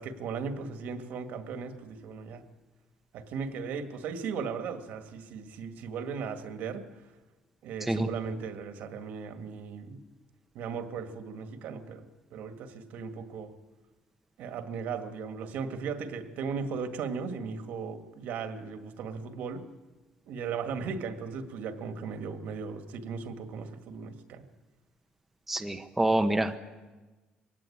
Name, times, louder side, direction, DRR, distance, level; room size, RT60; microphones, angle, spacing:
voice 1, 0.0-2.4 3.1-7.0 7.6-10.0 10.5-13.5 14.4-19.6 20.3-24.4, right 5 dB, 70° right, 7 dB, 2.0 m, -37 dB
voice 2, 25.5-26.6, right 1 dB, 5° right, 5 dB, 0.9 m, -26 dB
22.0 x 17.0 x 8.8 m, 1.2 s
cardioid pair, 155°, 3 cm